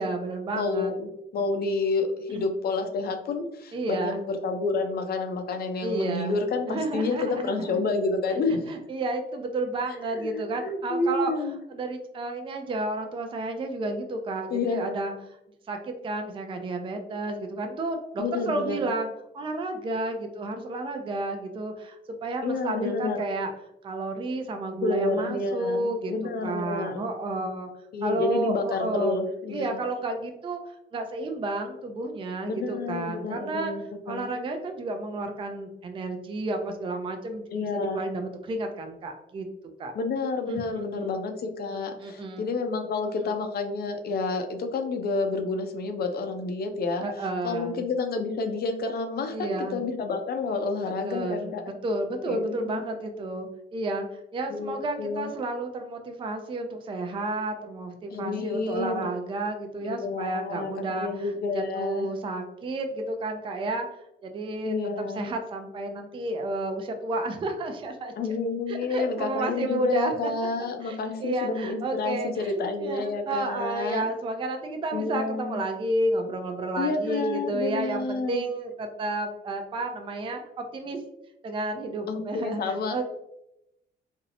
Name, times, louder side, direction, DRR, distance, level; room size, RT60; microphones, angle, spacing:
voice 1, 0.0-0.9 2.3-2.5 3.7-4.2 5.8-6.4 6.7-7.8 8.3-11.3 11.7-15.1 15.7-23.5 23.8-27.7 28.0-29.2 29.5-33.7 34.1-39.5 39.8-39.9 40.5-41.1 42.0-42.4 43.2-43.3 47.0-47.8 49.3-49.8 51.1-54.1 54.3-63.9 64.2-68.1 68.7-70.3 70.8-81.0 81.4-83.0, right 2 dB, 25° right, 5 dB, 0.3 m, -31 dB
voice 2, 0.5-8.6 9.9-11.6 14.5-14.8 18.2-18.9 22.4-23.3 24.7-27.1 27.9-29.8 32.5-34.3 37.5-38.1 39.9-47.0 47.4-51.6 52.3-52.8 54.5-55.3 58.1-59.1 59.8-62.1 64.6-65.3 68.2-74.1 74.7-75.6 76.8-78.4 82.1-83.0, left 3 dB, 50° left, 6 dB, 0.5 m, -29 dB
2.5 x 2.0 x 2.7 m, 0.85 s
cardioid pair, 90°, 20 cm